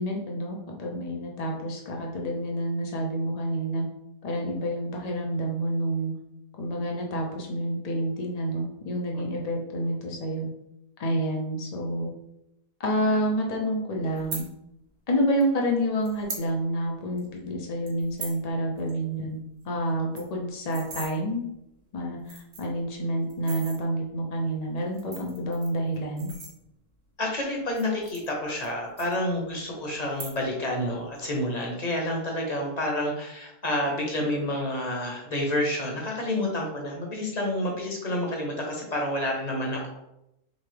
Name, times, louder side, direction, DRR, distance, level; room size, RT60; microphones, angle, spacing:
voice 1, 0.0-3.9 4.2-6.1 6.6-10.5 11.0-12.1 12.8-14.4 15.1-19.4 19.6-21.4 21.9-26.3, right 1 dB, 85° left, -1 dB, 0.3 m, -28 dB
sound 1, 14.1-14.4 15.4-15.5 16.0-16.5 16.8-16.9 17.2-17.4 17.9-18.4 18.8-18.9 19.2-19.3 19.6-19.7 20.0-21.1 21.8-21.9 22.2-22.8 23.3-23.8 24.8-27.0 27.6-28.7 29.0-29.6 30.0-30.6 30.9-31.3, right 4 dB, 55° right, 1.3 m, -40 dB
voice 2, 27.2-39.9, left 1 dB, 35° left, 0 dB, 0.8 m, -29 dB
4.0 x 3.3 x 3.3 m, 0.85 s
omnidirectional pair, 1.7 m